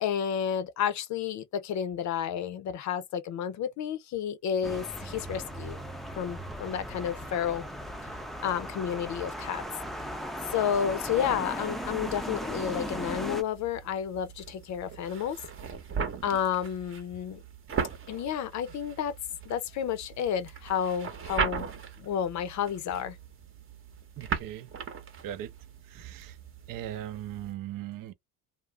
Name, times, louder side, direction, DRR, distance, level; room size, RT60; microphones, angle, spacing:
voice 1, 0.0-5.8 6.2-7.7 8.4-9.6 10.5-15.4 16.2-17.4 18.1-19.2 19.5-21.7 22.0-23.2, left 8 dB, 50° left, 0.6 m, -31 dB
sound 1, 4.6-13.4, equal, ahead, 0.4 m, -37 dB
sound 2, 12.5-27.5, right 6 dB, 35° right, 0.8 m, -39 dB
voice 2, 24.2-24.7 25.2-25.5 25.9-26.4 26.7-28.1, right 11 dB, 60° right, 0.6 m, -39 dB
2.4 x 2.0 x 3.3 m
cardioid pair, 105°, 37 cm